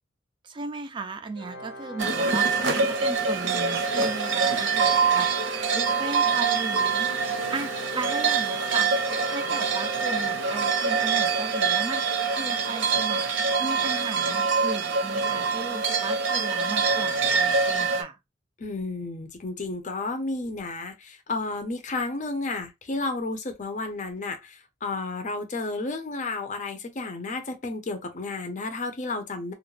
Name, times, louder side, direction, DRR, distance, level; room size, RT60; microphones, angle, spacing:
voice 1, 0.4-18.2, right 3 dB, 25° right, 0.3 m, -36 dB
Organ, 1.4-12.2, right 1 dB, 80° left, 0.7 m, -39 dB
sound 1, 2.0-18.0, right 5 dB, 85° right, 0.7 m, -25 dB
voice 2, 18.6-29.5, left 3 dB, 40° left, 0.5 m, -32 dB
2.3 x 2.0 x 3.0 m
head